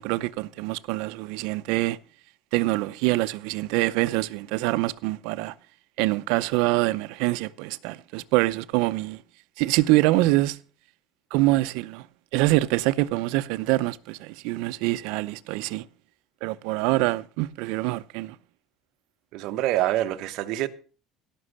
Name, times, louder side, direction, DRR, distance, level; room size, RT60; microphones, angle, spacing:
voice 1, 0.0-2.0 2.5-5.5 6.0-9.2 9.6-10.6 11.3-12.0 12.3-15.8 16.4-18.3, right 19 dB, 75° right, 0.6 m, -25 dB
voice 2, 19.3-20.7, right 14 dB, 55° right, 1.0 m, -26 dB
17.0 x 6.1 x 6.5 m
cardioid pair, 165°, 0 cm